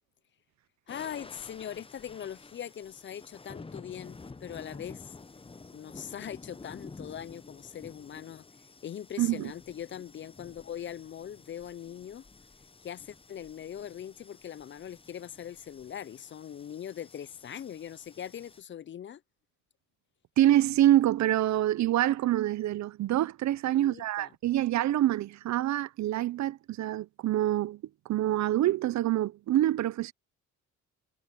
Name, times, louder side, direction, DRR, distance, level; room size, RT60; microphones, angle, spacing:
voice 1, 0.9-5.1 5.7-8.5 8.8-12.3 12.8-19.2 23.7-24.3, left 9 dB, 40° left, 0.5 m, -41 dB
sound 1, 0.9-18.6, left 3 dB, 20° left, 0.9 m, -51 dB
voice 2, 9.2-9.5 20.4-27.8 28.1-30.1, right 13 dB, 65° right, 0.7 m, -26 dB
cardioid pair, 90°, 30 cm